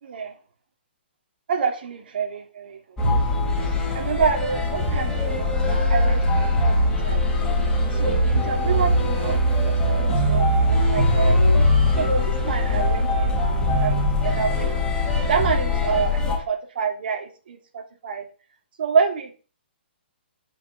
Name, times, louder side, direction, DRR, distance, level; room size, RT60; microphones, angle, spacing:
voice 1, 0.0-0.4 1.5-3.0 3.9-7.5 7.9-11.7 12.0-14.7 15.0-18.2 18.8-19.3, right 6 dB, 60° right, 3 dB, 3.1 m, -28 dB
sound 1, 3.0-16.4, left 1 dB, 10° left, 3.7 m, -21 dB
9.0 x 6.5 x 7.4 m, 0.37 s
hypercardioid pair, 155°, 6 cm